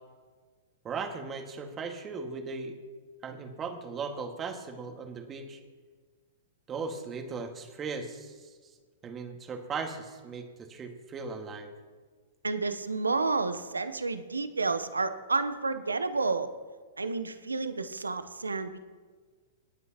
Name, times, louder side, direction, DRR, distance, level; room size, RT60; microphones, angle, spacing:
voice 1, 0.8-2.8 3.2-5.6 6.7-8.7 9.0-11.7, right 4 dB, 25° right, 4 dB, 1.8 m, -38 dB
voice 2, 12.4-16.5 17.0-18.8, right 3 dB, 90° right, 11 dB, 0.8 m, -30 dB
27.5 x 9.4 x 2.9 m, 1.5 s
hypercardioid pair, 110°, 0 cm